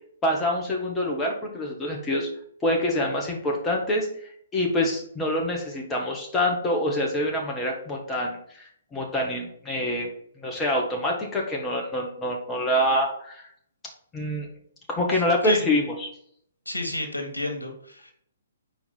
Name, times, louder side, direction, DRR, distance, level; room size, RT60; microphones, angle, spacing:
voice 1, 0.2-2.3 2.6-4.1 4.5-10.1 10.4-13.5 14.1-14.5 14.9-16.1, left 1 dB, 15° left, -1 dB, 1.5 m, -26 dB
voice 2, 16.6-18.1, left 1 dB, 85° left, 3 dB, 1.7 m, -30 dB
5.1 x 4.6 x 5.6 m, 0.64 s
figure-of-eight pair, 125°, 0 cm